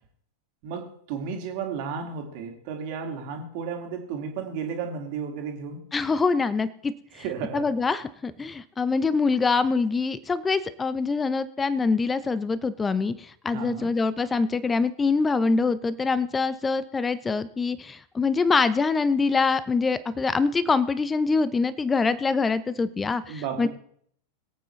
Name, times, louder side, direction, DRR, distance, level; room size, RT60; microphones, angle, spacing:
voice 1, 0.6-5.9 7.1-7.7 13.5-13.9 23.3-23.7, right 6 dB, 45° right, 3 dB, 2.4 m, -33 dB
voice 2, 5.9-6.9 7.5-23.7, left 4 dB, 15° left, 15 dB, 0.8 m, -24 dB
22.5 x 8.6 x 3.2 m, 0.65 s
figure-of-eight pair, 90°, 0 cm